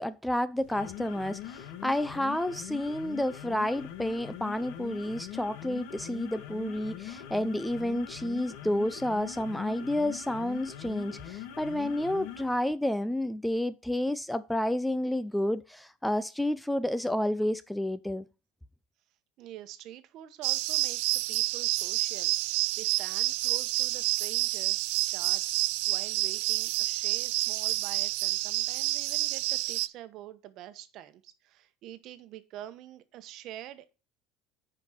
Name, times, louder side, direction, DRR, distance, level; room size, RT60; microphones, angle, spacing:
voice 1, 0.0-18.3, left 1 dB, 5° left, 0.4 m, -30 dB
sound 1, 0.6-12.6, left 11 dB, 65° left, 1.2 m, -42 dB
voice 2, 19.4-25.4 25.9-33.8, right 13 dB, 50° right, 1.0 m, -46 dB
sound 2, 20.4-29.9, right 20 dB, 75° right, 0.4 m, -29 dB
9.6 x 5.2 x 4.2 m
supercardioid pair, 135°, 0 cm